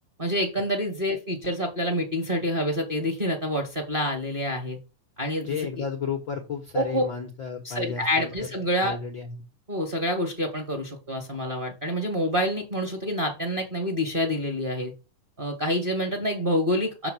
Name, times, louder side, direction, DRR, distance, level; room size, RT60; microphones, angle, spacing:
voice 1, 0.2-4.8 5.2-5.8 6.7-7.0 7.6-9.0 9.7-14.9 15.4-17.1, equal, 20° right, 1 dB, 1.5 m, -27 dB
voice 2, 5.4-8.3 8.8-9.4, left 6 dB, 65° left, 3 dB, 1.2 m, -33 dB
6.9 x 6.2 x 6.6 m, 0.30 s
omnidirectional pair, 4.3 m